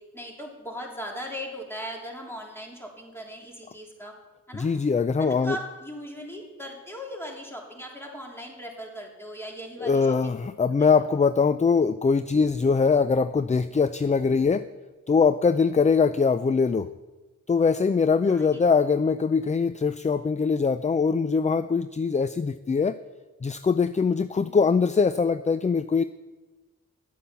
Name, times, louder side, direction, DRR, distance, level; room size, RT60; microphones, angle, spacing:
voice 1, 0.1-4.1 4.5-4.7 5.2-10.3 15.8-15.9 18.3-18.6 24.4-24.6, equal, 5° left, -1 dB, 3.2 m, -38 dB
voice 2, 4.5-5.6 9.8-14.7 15.1-16.9 17.5-23.0 23.4-26.0, left 5 dB, 20° left, 13 dB, 0.4 m, -22 dB
10.5 x 8.3 x 6.9 m, 1.2 s
cardioid pair, 50°, 33 cm